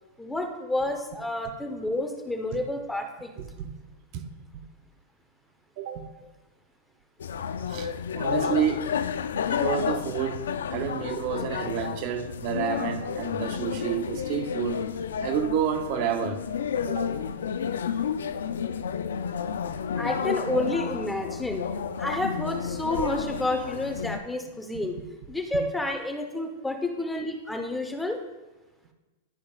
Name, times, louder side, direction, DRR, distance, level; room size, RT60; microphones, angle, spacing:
voice 1, 0.2-3.3 20.0-21.6 22.0-25.0 25.3-28.2, left 1 dB, 5° left, 1.0 m, -30 dB
voice 2, 3.4-3.7 4.1-4.3 5.8-6.1 7.7-8.9 9.5-10.4 10.7-14.8 15.2-16.4 16.9-17.1 25.5-25.6, right 8 dB, 50° right, 0.7 m, -29 dB
sound 1, 7.2-24.2, left 7 dB, 85° left, 0.4 m, -31 dB
12.0 x 4.8 x 2.4 m
hypercardioid pair, 115°, 0 cm